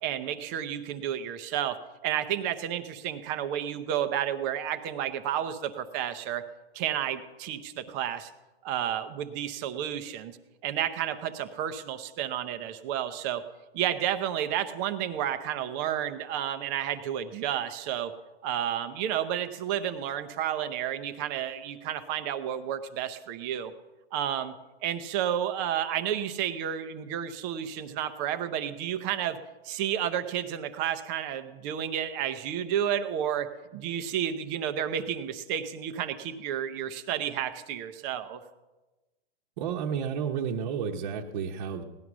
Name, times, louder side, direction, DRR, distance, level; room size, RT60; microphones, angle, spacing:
voice 1, 0.0-6.4 6.7-8.3 8.6-10.4 10.6-13.4 13.7-18.1 18.4-23.7 24.1-24.5 24.8-29.4 29.6-38.4, right 10 dB, 20° right, 9 dB, 0.5 m, -31 dB
voice 2, 39.6-41.8, right 7 dB, 35° right, -1 dB, 0.9 m, -31 dB
17.5 x 11.0 x 6.0 m, 1.1 s
hypercardioid pair, 160°, 32 cm